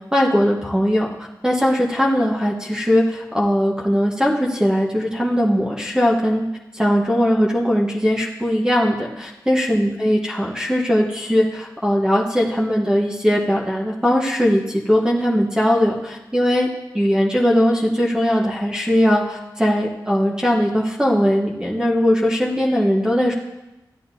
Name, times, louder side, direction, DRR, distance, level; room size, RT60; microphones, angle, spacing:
voice 1, 0.1-1.1 1.4-6.4 6.7-16.7 16.9-23.3, equal, 10° right, -3 dB, 1.4 m, -19 dB
13.5 x 9.1 x 2.8 m, 1.0 s
cardioid pair, 60°, 8 cm